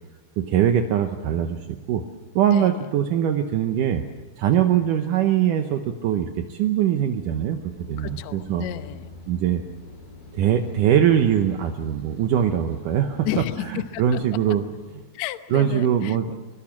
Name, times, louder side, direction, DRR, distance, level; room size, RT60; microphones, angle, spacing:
voice 1, 0.4-2.0 2.4-4.0 4.4-8.7 9.3-9.6 10.3-13.3 13.7-14.6 15.5-16.3, right 9 dB, 70° right, 6 dB, 2.3 m, -22 dB
voice 2, 2.5-2.9 8.0-9.0 13.2-14.2 15.1-16.2, left 12 dB, 70° left, 11 dB, 1.8 m, -32 dB
sound 1, 7.7-15.0, left 3 dB, 85° left, 6.3 m, -45 dB
22.5 x 21.0 x 7.3 m, 1.2 s
omnidirectional pair, 4.2 m